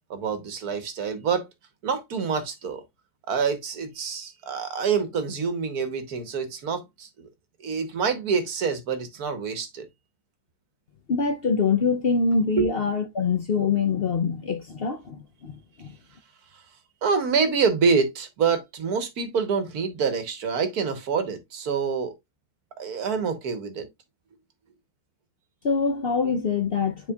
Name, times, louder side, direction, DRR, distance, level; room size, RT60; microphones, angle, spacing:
voice 1, 0.1-1.5 1.8-2.8 3.3-7.3 7.6-9.9 12.6-12.7 16.5-16.6 17.0-22.1 22.8-23.9, right 5 dB, 80° right, 1.6 m, -26 dB
voice 2, 11.1-16.0 25.6-27.1, left 5 dB, 55° left, 0.7 m, -24 dB
9.7 x 4.3 x 2.3 m
omnidirectional pair, 1.6 m